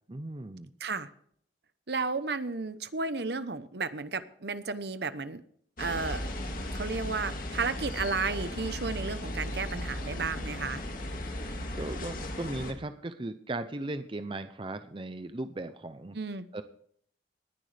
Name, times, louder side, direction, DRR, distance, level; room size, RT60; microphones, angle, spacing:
voice 1, 0.1-0.7 11.7-16.2 16.5-16.6, right 2 dB, 30° right, 10 dB, 0.6 m, -37 dB
voice 2, 1.9-5.4 5.8-6.3 6.7-10.8 16.1-16.5, right 4 dB, 60° right, 12 dB, 0.9 m, -33 dB
sound 1, 5.8-12.7, left 1 dB, 50° left, 2.0 m, -36 dB
19.5 x 10.5 x 3.4 m, 0.63 s
head